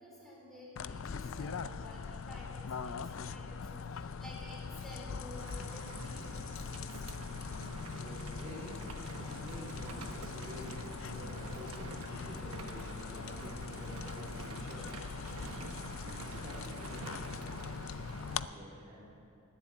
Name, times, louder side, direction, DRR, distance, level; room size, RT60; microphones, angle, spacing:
voice 1, 0.0-2.0 2.3-7.0 9.2-9.5 15.3-15.6, left 1 dB, ahead, -5 dB, 4.1 m, -52 dB
sound 1, 0.8-18.5, left 5 dB, 60° left, 0.4 m, -42 dB
Rain, 5.3-18.4, right 2 dB, 85° right, 1.3 m, -47 dB
voice 2, 7.8-15.2 15.5-19.1, equal, 30° right, -6 dB, 2.5 m, -50 dB
20.0 x 7.6 x 8.8 m, 2.7 s
head